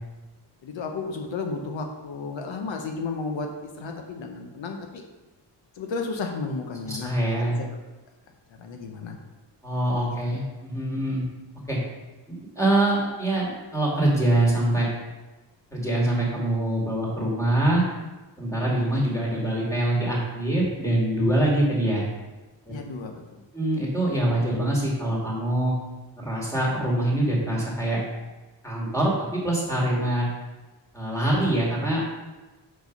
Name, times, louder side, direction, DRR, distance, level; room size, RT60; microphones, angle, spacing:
voice 1, 0.6-5.0 5.8-7.7 8.6-9.2 22.7-23.4, left 4 dB, 85° left, 3 dB, 0.9 m, -33 dB
voice 2, 6.8-7.6 9.6-11.3 11.7-11.8 12.3-14.9 15.7-17.8 18.4-22.0 23.5-25.7 26.2-28.0 28.6-29.1 29.4-30.3 30.9-32.0, right 1 dB, 5° left, -5 dB, 2.3 m, -24 dB
6.2 x 4.9 x 5.3 m, 1.2 s
wide cardioid pair, 135°, 44 cm